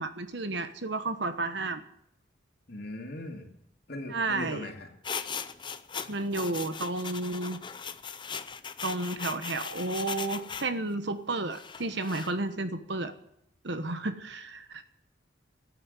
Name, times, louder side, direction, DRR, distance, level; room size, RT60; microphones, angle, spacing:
voice 1, 0.0-1.8 4.1-4.7 6.1-7.6 8.8-13.1 13.6-14.8, right 2 dB, 65° right, 10 dB, 1.2 m, -32 dB
voice 2, 2.7-3.5 3.9-4.9, left 1 dB, 50° left, 2 dB, 2.8 m, -39 dB
sound 1, 5.0-10.7 11.5-12.3, left 6 dB, 25° left, 0.6 m, -38 dB
13.0 x 9.1 x 9.7 m, 0.75 s
head